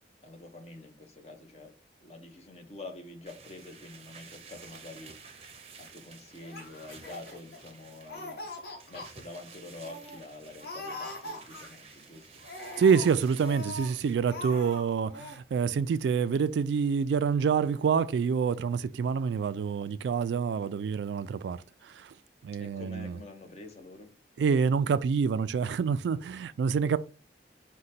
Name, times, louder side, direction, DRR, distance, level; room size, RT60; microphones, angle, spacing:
voice 1, 0.2-1.7 2.0-5.4 5.8-8.4 8.9-12.3 20.6-20.7 22.6-24.1, left 2 dB, 35° left, 0.8 m, -47 dB
sound 1, 3.3-14.2, right 5 dB, 35° right, 0.6 m, -52 dB
Laughter, 6.4-7.7 8.1-9.1 9.5-9.6 9.8-10.2 10.6-12.0 12.4-13.9 14.2-14.8 15.1-15.4, left 2 dB, 65° left, 1.1 m, -41 dB
voice 2, 12.8-22.1 22.4-23.2 24.4-27.0, right 6 dB, 85° right, 0.3 m, -27 dB
5.0 x 2.2 x 4.1 m
head